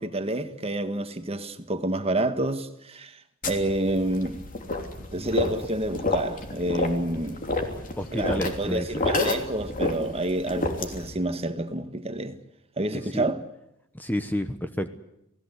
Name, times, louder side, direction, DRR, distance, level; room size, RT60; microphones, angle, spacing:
voice 1, 0.0-3.2 3.4-4.4 5.1-7.4 8.1-12.4 12.8-13.4, right 1 dB, 30° right, 1.6 m, -28 dB
sound 1, 3.4-11.1, left 2 dB, 40° left, 3.1 m, -30 dB
voice 2, 5.1-5.5 7.7-9.0 12.9-13.2 13.9-14.9, left 1 dB, 10° left, 1.0 m, -31 dB
28.5 x 18.0 x 8.3 m
head